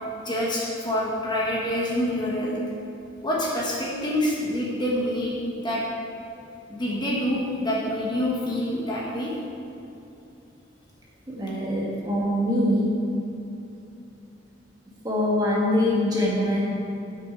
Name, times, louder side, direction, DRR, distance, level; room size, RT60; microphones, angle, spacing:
voice 1, 0.2-2.6 3.2-5.8 6.7-9.3, left 1 dB, 20° left, -5 dB, 1.3 m, -26 dB
voice 2, 11.3-13.1 15.0-16.7, left 1 dB, 20° right, -5 dB, 1.7 m, -23 dB
12.0 x 6.3 x 4.6 m, 2.8 s
head